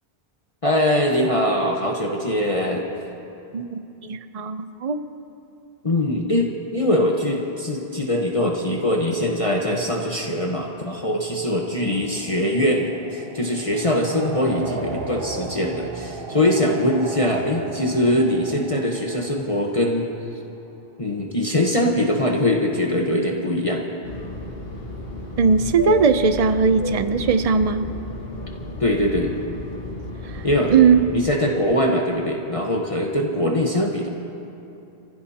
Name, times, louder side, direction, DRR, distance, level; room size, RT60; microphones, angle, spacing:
voice 1, 0.6-2.9 5.8-20.1 21.0-23.8 28.8-29.3 30.4-30.7 31.1-34.1, left 1 dB, 35° left, -1 dB, 1.2 m, -22 dB
voice 2, 4.1-5.0 25.4-27.8 30.3-31.0, right 5 dB, 40° right, 10 dB, 0.7 m, -19 dB
sound 1, 9.7-20.5, right 3 dB, 60° right, 1.3 m, -36 dB
Fixed-wing aircraft airplane, 24.0-31.2, left 1 dB, 65° left, 2.2 m, -33 dB
28.5 x 16.0 x 2.9 m, 2.8 s
omnidirectional pair, 1.1 m